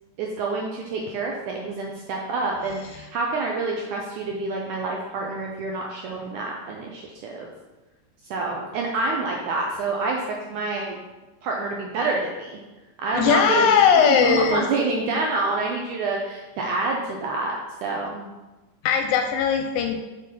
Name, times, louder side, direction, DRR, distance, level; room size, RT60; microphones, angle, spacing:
voice 1, 0.2-7.5 8.3-10.2 10.5-11.0 11.4-12.6 13.0-17.6 17.8-18.3, right 3 dB, 75° right, 0 dB, 1.8 m, -27 dB
voice 2, 13.1-14.6 18.8-20.0, left 7 dB, 80° left, 4 dB, 2.2 m, -19 dB
6.4 x 6.3 x 5.5 m, 1.1 s
omnidirectional pair, 4.4 m